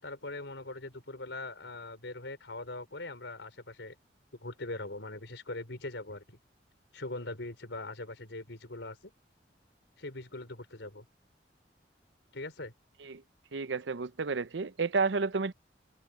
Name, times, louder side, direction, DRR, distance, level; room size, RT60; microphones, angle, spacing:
voice 1, 0.0-3.9 4.4-6.4 6.9-9.1 10.0-11.1 12.3-12.7, left 2 dB, 85° left, 4.1 m, -41 dB
voice 2, 13.5-15.5, right 4 dB, 85° right, 0.7 m, -31 dB
open air
head